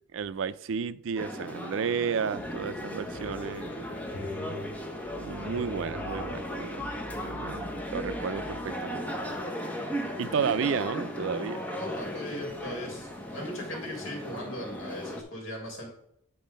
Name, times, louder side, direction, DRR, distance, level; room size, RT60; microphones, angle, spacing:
voice 1, 0.1-3.8 5.1-6.9 7.2-9.0 10.2-11.7, right 6 dB, 65° right, 15 dB, 0.4 m, -32 dB
sound 1, 1.2-15.2, equal, 5° left, 0.9 m, -36 dB
Piano, 2.4-9.4, equal, 50° left, 0.9 m, -44 dB
sound 2, 9.2-14.4, left 2 dB, 35° left, 1.8 m, -53 dB
voice 2, 11.8-15.9, left 1 dB, 70° left, 0 dB, 3.2 m, -39 dB
9.3 x 4.5 x 5.2 m, 0.70 s
head